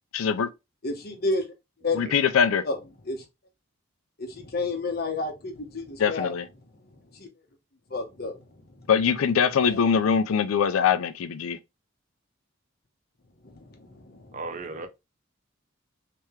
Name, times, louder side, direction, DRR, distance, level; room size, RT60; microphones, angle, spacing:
voice 1, 0.1-0.5 2.0-2.6 6.0-6.5 8.9-11.6, left 7 dB, 85° left, 0.4 m, -22 dB
voice 2, 0.8-1.4 1.8-2.1 2.6-2.8 3.1-3.2 4.2-6.3 7.1-7.3 7.9-8.4 8.8-8.9 9.7-9.9 13.4-14.4, left 3 dB, 50° left, 1.0 m, -31 dB
voice 3, 1.8-2.1 14.3-14.9, right 3 dB, 40° right, 0.5 m, -36 dB
3.4 x 3.2 x 3.1 m
head